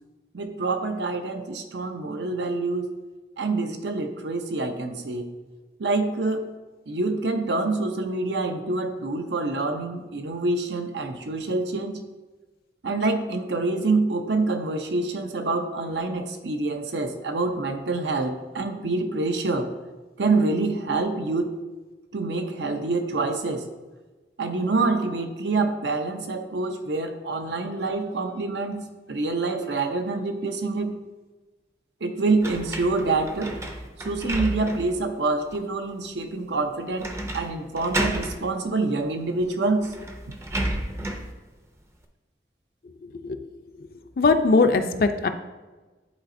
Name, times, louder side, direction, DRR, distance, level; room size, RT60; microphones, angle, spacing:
voice 1, 0.3-2.9 3.4-5.3 5.8-6.5 6.9-12.0 12.8-19.7 20.2-21.5 22.1-23.7 24.4-30.9 32.0-33.6 34.0-39.9, right 3 dB, 85° right, 6 dB, 0.7 m, -26 dB
sound 1, 32.4-35.0 35.5-35.6 37.0-37.5 37.7-38.4 39.4-39.5 39.8-41.3, right 1 dB, 15° right, 0.5 m, -31 dB
voice 2, 44.2-45.3, left 3 dB, 55° left, 8 dB, 0.4 m, -20 dB
10.0 x 4.1 x 2.6 m, 1.2 s
head